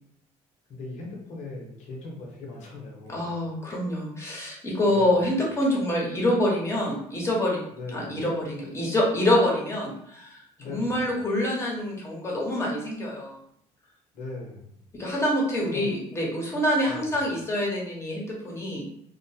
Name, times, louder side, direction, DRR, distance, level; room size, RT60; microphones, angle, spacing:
voice 1, 0.7-3.3 4.9-5.2 7.7-8.1 10.6-11.0 14.1-14.8 15.6-15.9 16.9-17.1, left 3 dB, 65° left, -1 dB, 0.9 m, -39 dB
voice 2, 3.1-7.6 7.9-13.4 14.9-18.8, left 1 dB, 20° left, -3 dB, 1.1 m, -26 dB
2.5 x 2.2 x 2.7 m, 0.71 s
supercardioid pair, 80°, 13 cm